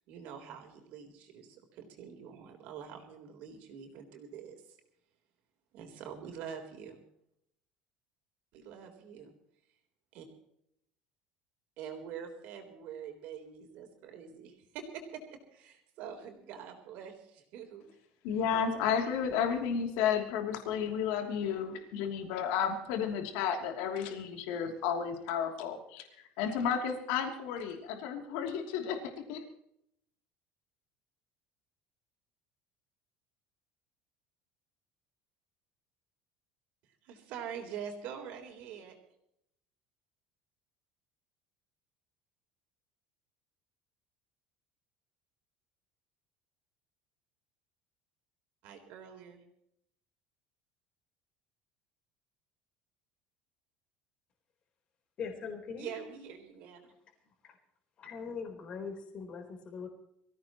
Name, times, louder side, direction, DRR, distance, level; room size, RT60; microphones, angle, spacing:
voice 1, 0.0-4.8 5.7-7.0 8.5-9.3 10.1-10.3 11.8-17.9 37.0-39.0 48.6-49.4 55.8-56.9, right 7 dB, 55° right, 4 dB, 3.9 m, -45 dB
voice 2, 18.2-29.0 29.3-29.4, left 7 dB, 75° left, 3 dB, 3.0 m, -32 dB
voice 3, 55.2-56.1 57.4-57.6 58.0-59.9, left 5 dB, 35° left, 3 dB, 4.0 m, -41 dB
24.0 x 16.0 x 3.1 m, 0.76 s
cardioid pair, 170°, 3 cm